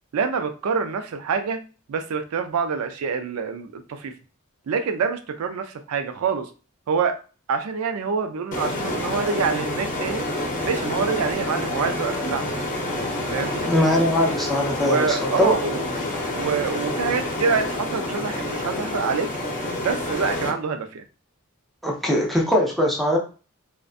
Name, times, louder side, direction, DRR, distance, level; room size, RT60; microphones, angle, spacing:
voice 1, 0.1-1.6 1.9-4.1 4.7-6.5 6.9-7.2 7.5-10.2 10.6-12.5 13.3-13.6 14.8-15.8 16.3-19.3 19.8-21.0, right 5 dB, 85° right, 7 dB, 0.4 m, -26 dB
sound 1, 8.5-20.5, left 1 dB, 35° left, 0.7 m, -28 dB
voice 2, 13.6-15.5 21.8-23.2, left 1 dB, ahead, -3 dB, 0.6 m, -21 dB
2.5 x 2.1 x 2.4 m, 0.34 s
head